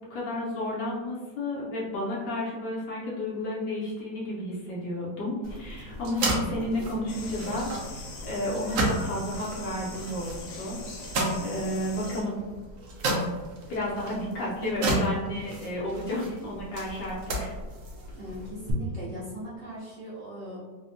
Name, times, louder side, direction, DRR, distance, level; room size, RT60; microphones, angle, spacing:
voice 1, 0.1-10.8 11.0-12.4 13.7-17.5, left 1 dB, 70° left, -6 dB, 1.2 m, -32 dB
sound 1, 5.4-18.7, right 1 dB, 75° right, 0.7 m, -33 dB
sound 2, 7.1-12.2, left 3 dB, 90° left, 1.4 m, -42 dB
voice 2, 18.2-20.6, right 1 dB, 50° right, -9 dB, 1.1 m, -39 dB
3.3 x 2.1 x 2.5 m, 1.3 s
omnidirectional pair, 2.0 m